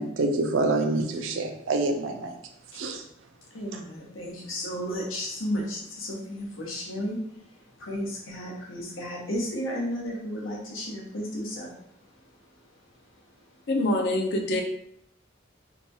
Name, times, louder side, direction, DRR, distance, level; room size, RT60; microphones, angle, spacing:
voice 1, 0.0-2.3 2.8-3.0, right 2 dB, 70° right, 4 dB, 0.4 m, -26 dB
voice 2, 3.5-13.7, equal, 90° left, -2 dB, 0.8 m, -34 dB
voice 3, 13.7-14.6, left 1 dB, 55° left, 3 dB, 0.5 m, -25 dB
2.8 x 2.3 x 2.7 m, 0.73 s
head